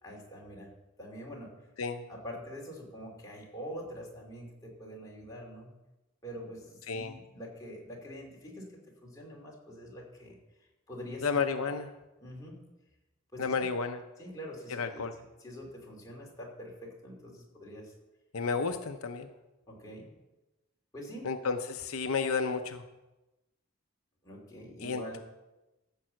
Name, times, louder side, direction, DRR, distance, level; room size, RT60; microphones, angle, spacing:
voice 1, 0.0-0.7 1.0-1.5 2.1-5.7 6.2-11.3 12.2-12.6 13.3-13.5 14.2-17.9 19.7-20.1 20.9-21.3 24.2-25.2, equal, 15° left, -3 dB, 2.7 m, -45 dB
voice 2, 11.2-11.9 13.4-14.0 14.8-15.1 18.3-19.3 21.2-22.8 24.8-25.0, left 5 dB, 80° left, 7 dB, 0.7 m, -31 dB
14.5 x 5.5 x 7.6 m, 1.0 s
head